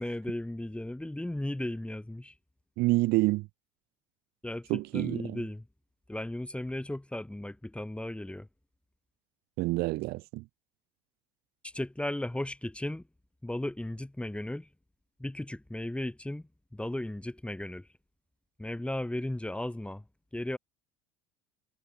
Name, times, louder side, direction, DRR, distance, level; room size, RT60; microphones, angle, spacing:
voice 1, 0.0-2.3 4.4-5.6 6.1-8.5 11.6-13.0 13.4-14.7 15.2-16.4 16.7-17.9 18.6-20.0 20.3-20.6, left 1 dB, 5° left, 2.1 m, -35 dB
voice 2, 2.8-3.5 4.7-5.4 9.6-10.4, right 21 dB, 60° right, 1.1 m, -28 dB
hypercardioid pair, 70°, 18 cm